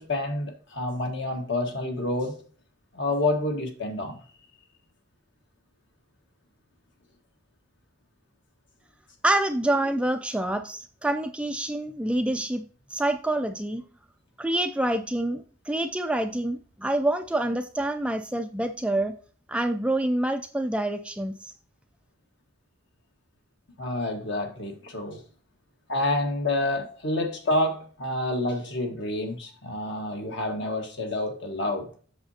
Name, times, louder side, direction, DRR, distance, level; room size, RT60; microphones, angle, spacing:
voice 1, 0.0-2.4 2.9-4.2 23.8-25.2 25.9-31.9, left 2 dB, 55° left, 4 dB, 1.6 m, -28 dB
voice 2, 9.2-13.8 14.4-19.2 19.5-21.5, right 1 dB, 5° right, 8 dB, 0.3 m, -27 dB
8.0 x 6.6 x 2.8 m, 0.42 s
head